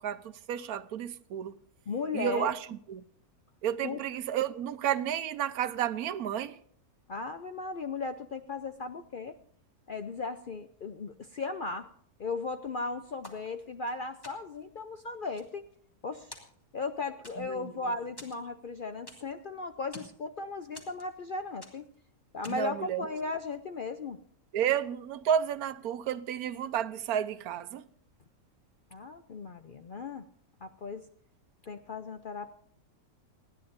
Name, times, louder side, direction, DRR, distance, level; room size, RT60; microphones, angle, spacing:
voice 1, 0.0-1.6 2.1-2.6 2.9-3.0 3.6-6.6 17.4-17.7 22.5-23.1 24.5-27.8, right 9 dB, 80° right, 1.2 m, -31 dB
voice 2, 1.9-2.5 3.8-4.0 7.1-9.4 9.9-11.9 12.2-15.7 16.0-16.4 16.7-21.9 22.3-24.2 28.9-30.3 30.6-31.1 31.6-32.5, left 4 dB, 55° left, 0.5 m, -36 dB
sound 1, 13.2-13.9 14.2-14.7 15.1-16.0 16.3-16.9 17.2-17.7 18.2-19.4 19.7-20.2 20.7-21.3 21.6-22.0 22.4-22.8, left 1 dB, 15° left, 2.3 m, -50 dB
29.0 x 10.5 x 2.6 m
omnidirectional pair, 1.6 m